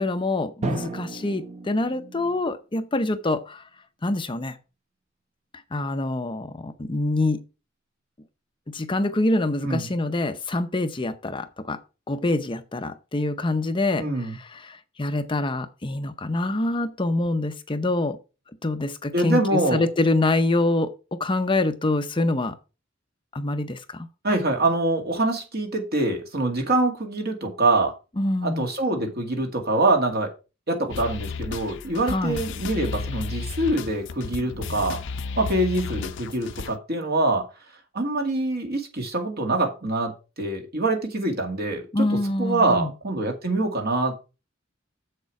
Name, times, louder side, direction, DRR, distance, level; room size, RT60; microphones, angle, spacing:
voice 1, 0.0-3.7 4.0-4.6 5.5-7.4 8.7-11.8 12.1-18.2 18.6-22.6 23.3-24.1 28.2-28.7 32.0-32.4 41.9-42.9, left 2 dB, 25° left, 0.6 m, -25 dB
Drum, 0.6-2.5, right 2 dB, 35° right, 1.0 m, -33 dB
voice 2, 14.0-14.4 19.1-19.8 24.2-27.9 28.4-30.3 30.7-35.0 35.4-37.5 37.9-42.1 42.4-44.2, right 2 dB, 55° right, 2.1 m, -24 dB
sound 1, 30.9-36.8, left 4 dB, 65° left, 0.5 m, -33 dB
7.3 x 6.7 x 4.7 m
head